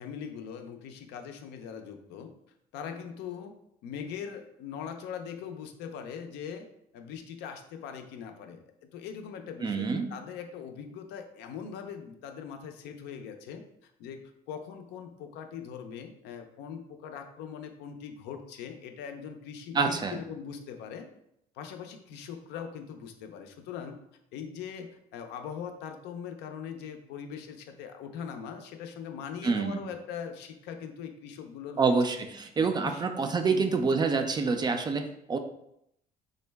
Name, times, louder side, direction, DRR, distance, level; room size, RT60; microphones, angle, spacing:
voice 1, 0.0-2.3 2.7-3.6 3.8-6.7 6.9-8.6 8.9-21.1 21.5-24.0 24.3-31.9 32.6-33.0 33.4-33.7, left 7 dB, 85° left, 6 dB, 0.5 m, -41 dB
voice 2, 9.6-10.1 19.7-20.2 29.4-29.8 31.8-35.4, right 4 dB, 25° right, 6 dB, 0.3 m, -27 dB
3.7 x 2.1 x 3.3 m, 0.77 s
cardioid pair, 110°, 17 cm